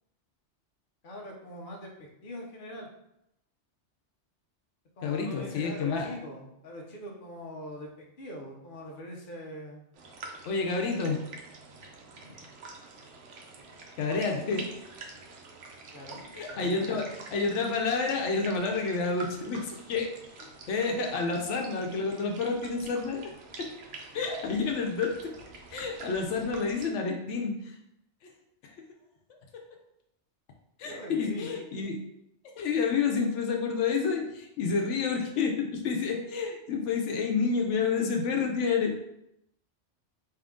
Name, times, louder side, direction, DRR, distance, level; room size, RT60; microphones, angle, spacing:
voice 1, 1.0-2.9 5.0-7.9 8.2-9.8 12.1-12.4 15.9-16.2 16.5-17.1 30.8-31.6, equal, 50° left, 0 dB, 0.9 m, -42 dB
voice 2, 5.0-6.1 10.4-11.2 14.0-14.7 16.3-20.1 20.4-23.3 23.6-23.7 24.1-25.3 25.7-27.7 28.6-28.7 30.8-32.0 32.6-39.0, left 4 dB, 90° left, 2 dB, 1.0 m, -29 dB
sound 1, 9.9-26.9, right 3 dB, 85° right, 1.0 m, -47 dB
3.6 x 2.8 x 3.6 m, 0.82 s
omnidirectional pair, 1.2 m